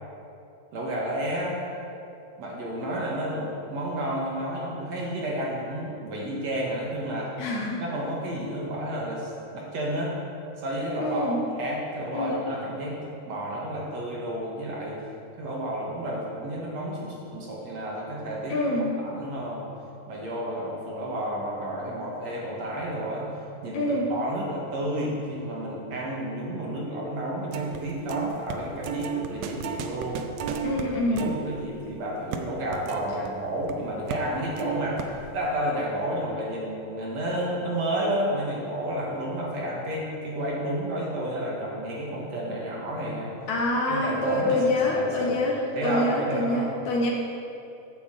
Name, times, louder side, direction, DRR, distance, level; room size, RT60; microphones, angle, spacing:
voice 1, 0.7-1.6 2.4-7.3 7.8-10.2 10.6-15.0 15.4-18.6 19.0-19.7 20.1-23.3 23.6-30.2 30.7-43.4 43.9-45.4 45.7-46.7, right 1 dB, 55° right, -4 dB, 2.6 m, -31 dB
voice 2, 7.4-7.8 11.0-11.4 12.1-12.4 18.5-18.9 23.7-24.1 30.6-31.3 43.5-47.1, left 1 dB, 65° left, -2 dB, 2.4 m, -26 dB
sound 1, 27.5-27.8 28.1-33.7 34.1-34.3 34.6-35.4, right 7 dB, 80° right, 1.5 m, -34 dB
10.0 x 7.2 x 7.5 m, 2.7 s
omnidirectional pair, 4.0 m